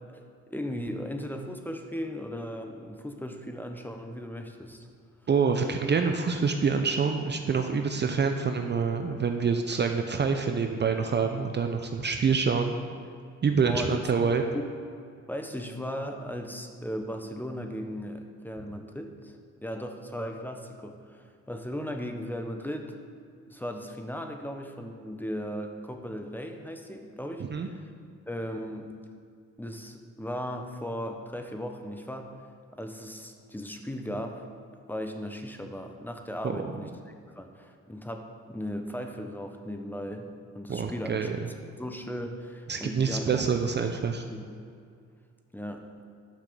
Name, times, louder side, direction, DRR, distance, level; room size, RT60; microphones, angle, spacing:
voice 1, 0.1-4.9 13.6-14.0 15.3-23.0 23.5-27.9 28.3-28.9 29.6-32.3 32.8-34.5 34.9-41.3 41.8-43.4 44.3-44.5 45.5-45.8, equal, 5° left, 5 dB, 1.0 m, -37 dB
voice 2, 5.3-12.7 13.4-14.4 27.5-27.7 36.4-36.6 40.7-41.3 42.7-44.2, right 5 dB, 35° right, 6 dB, 0.7 m, -26 dB
10.5 x 5.8 x 6.8 m, 2.2 s
cardioid pair, 90°, 30 cm